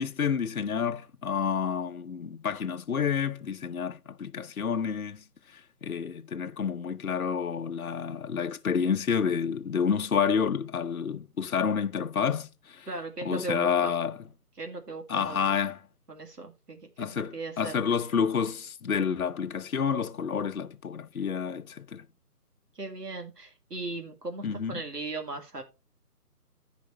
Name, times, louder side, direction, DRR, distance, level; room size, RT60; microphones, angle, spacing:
voice 1, 0.0-12.9 13.2-14.2 15.1-15.8 17.0-22.1 24.4-24.8, left 6 dB, 65° left, 0.8 m, -29 dB
voice 2, 12.9-13.9 14.6-15.6 16.1-17.7 22.8-25.6, right 2 dB, 80° right, 2.1 m, -38 dB
15.0 x 5.1 x 3.1 m
figure-of-eight pair, 155°, 47 cm